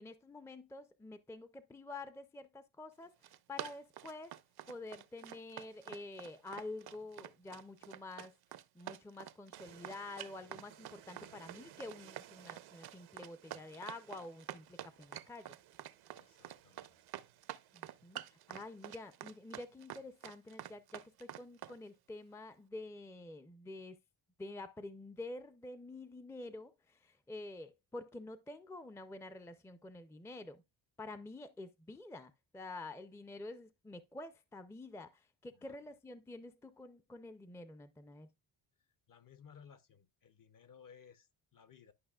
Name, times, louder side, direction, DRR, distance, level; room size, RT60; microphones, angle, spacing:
voice 1, 0.0-4.3 4.7-8.3 8.7-15.6 17.7-24.0 24.4-30.6 31.0-38.3, left 2 dB, 5° left, 0.5 m, -48 dB
Run, 3.0-21.8, right 12 dB, 55° right, 0.6 m, -48 dB
sound 1, 9.5-19.8, right 12 dB, 90° right, 0.9 m, -61 dB
voice 2, 16.1-17.0 35.5-35.8 39.1-41.9, left 7 dB, 45° left, 0.9 m, -60 dB
11.5 x 5.4 x 2.4 m
cardioid pair, 95°, 46 cm